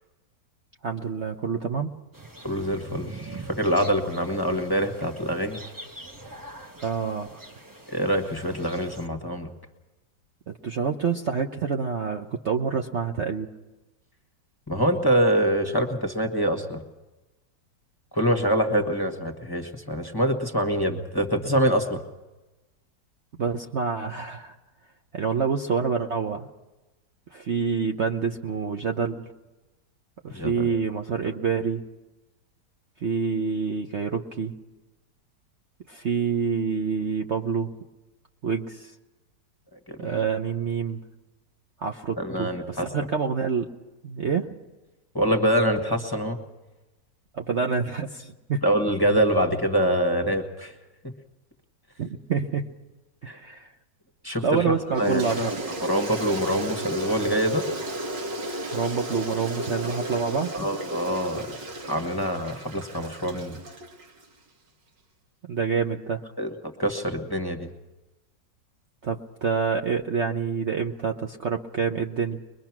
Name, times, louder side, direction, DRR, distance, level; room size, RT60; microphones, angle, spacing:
voice 1, 0.8-1.9 6.8-7.4 10.5-13.5 23.4-24.5 25.1-26.5 27.3-29.3 30.2-31.8 33.0-34.5 35.9-37.7 38.4-38.9 40.0-41.0 41.8-43.7 44.0-44.5 47.3-48.6 52.0-52.7 53.2-53.7 54.4-55.5 58.7-60.5 65.5-66.2 69.0-72.4, right 5 dB, 50° right, 3 dB, 1.0 m, -27 dB
sound 1, 2.1-9.1, right 2 dB, 15° right, 0.9 m, -43 dB
voice 2, 2.4-5.6 7.9-9.5 14.7-16.8 18.1-22.0 30.3-30.7 31.2-31.3 39.9-40.2 42.2-42.9 45.1-46.4 48.6-50.7 53.3-53.4 54.2-55.6 55.8-57.6 60.5-61.5 61.8-63.6 66.4-66.5 66.8-67.7, equal, 15° left, 4 dB, 1.4 m, -25 dB
Toilet flush, 54.9-64.3, right 1 dB, 85° right, 2.9 m, -34 dB
22.5 x 22.5 x 6.0 m, 1.1 s
omnidirectional pair, 1.9 m